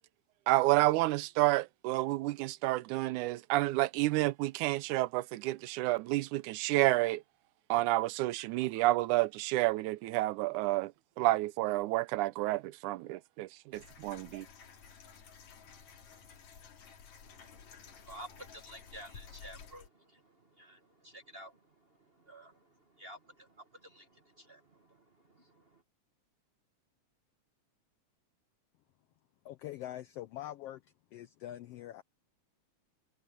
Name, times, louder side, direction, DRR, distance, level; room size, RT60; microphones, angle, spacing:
voice 1, 0.5-7.2 7.7-10.9 11.2-14.5, right 18 dB, 85° right, 2.1 m, -30 dB
sound 1, 13.7-19.9, left 6 dB, 70° left, 3.7 m, -53 dB
voice 2, 17.2-25.8, right 1 dB, 50° right, 0.7 m, -53 dB
voice 3, 29.4-30.8 31.1-32.0, left 13 dB, 85° left, 1.3 m, -43 dB
omnidirectional pair, 3.4 m